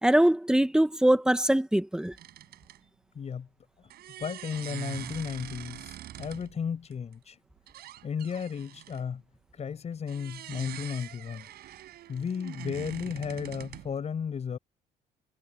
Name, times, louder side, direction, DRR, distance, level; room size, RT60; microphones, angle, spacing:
voice 1, 0.0-2.1, right 1 dB, 5° right, 1.6 m, -22 dB
sound 1, 2.2-2.8 3.9-6.6 6.9-7.1 7.6-9.0 10.1-14.0, right 13 dB, 70° right, 5.6 m, -43 dB
voice 2, 3.1-3.5 4.2-7.3 8.0-9.2 9.6-11.5 12.1-14.6, left 7 dB, 40° left, 6.2 m, -34 dB
cardioid pair, 110°, 17 cm